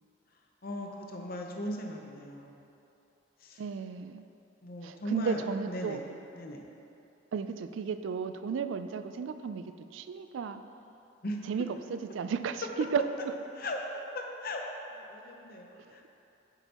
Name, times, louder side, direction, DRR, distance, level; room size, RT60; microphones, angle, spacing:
voice 1, 0.6-2.6 3.4-3.6 4.6-6.0 6.3-6.7 11.2-11.4 13.6-13.8 14.1-16.1, left 1 dB, 50° left, 1 dB, 0.7 m, -38 dB
voice 2, 3.6-4.2 4.8-6.0 7.3-10.6 11.5-13.0, right 6 dB, 70° right, 10 dB, 0.3 m, -34 dB
8.4 x 6.8 x 2.9 m, 2.9 s
head